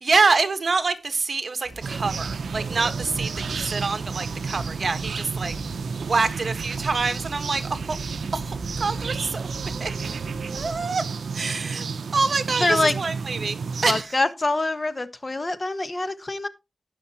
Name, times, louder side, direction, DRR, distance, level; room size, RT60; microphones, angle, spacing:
voice 1, 0.0-5.5 6.0-8.0 8.3-9.5 9.8-9.9 10.6-11.0 11.3-11.8 12.1-14.1, right 4 dB, 55° right, 1.4 m, -26 dB
sound 1, 1.6-10.8, right 2 dB, 20° right, 4.0 m, -40 dB
sound 2, 1.8-14.0, right 5 dB, 85° right, 0.5 m, -31 dB
voice 2, 12.6-12.9 13.9-16.5, left 2 dB, 35° left, 1.2 m, -24 dB
18.5 x 6.3 x 2.9 m
wide cardioid pair, 85°, 0 cm